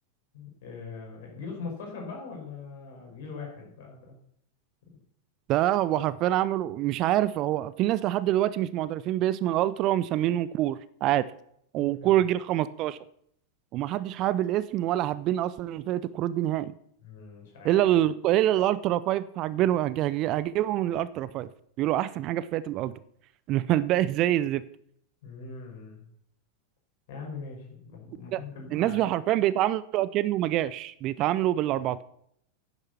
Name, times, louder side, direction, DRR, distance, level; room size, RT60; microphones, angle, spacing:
voice 1, 0.3-4.2 11.8-12.1 17.0-17.8 25.2-26.0 27.1-29.0, left 4 dB, 55° left, 1 dB, 5.2 m, -41 dB
voice 2, 5.5-11.3 11.7-13.0 13.7-16.7 17.6-21.5 21.8-22.9 23.5-24.6 28.3-28.4 28.7-32.0, right 13 dB, 35° right, 17 dB, 0.4 m, -26 dB
10.0 x 8.8 x 6.0 m, 0.69 s
figure-of-eight pair, 90°, 0 cm